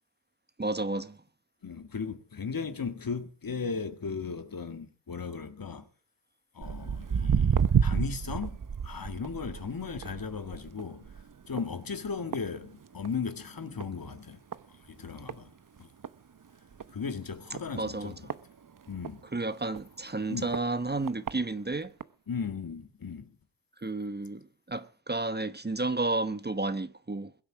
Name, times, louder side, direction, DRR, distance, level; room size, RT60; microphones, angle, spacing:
voice 1, 0.6-1.2 17.7-18.1 19.3-21.9 23.8-27.3, right 2 dB, 25° right, 1.1 m, -32 dB
voice 2, 1.6-5.9 6.6-11.1 11.5-14.4 14.9-15.5 16.9-18.2 18.9-19.2 20.3-20.5 22.3-23.3, left 5 dB, 60° left, 1.9 m, -36 dB
Walk footsteps, 6.6-13.3 13.6-14.0 14.5-14.6 15.3-15.4 15.8-15.9 16.0-16.1 16.7-16.9 17.5-19.1 19.7-19.8 20.5-20.6 21.1-21.3 22.0-22.1, right 7 dB, 55° right, 0.9 m, -30 dB
22.0 x 8.4 x 6.1 m
wide cardioid pair, 70°, 39 cm